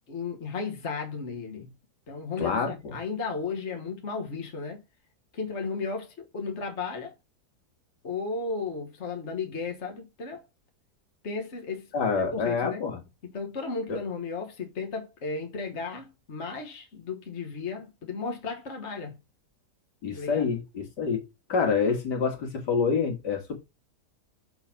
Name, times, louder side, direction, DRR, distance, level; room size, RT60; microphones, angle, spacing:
voice 1, 0.1-1.7 2.1-4.8 5.3-7.1 8.0-10.4 11.2-11.9 12.3-12.8 13.3-19.2 20.1-20.4, left 4 dB, 45° left, 1.6 m, -34 dB
voice 2, 2.4-3.0 11.9-13.0 13.9-14.0 20.0-23.6, left 5 dB, 90° left, 2.5 m, -27 dB
6.7 x 4.0 x 5.8 m
omnidirectional pair, 1.8 m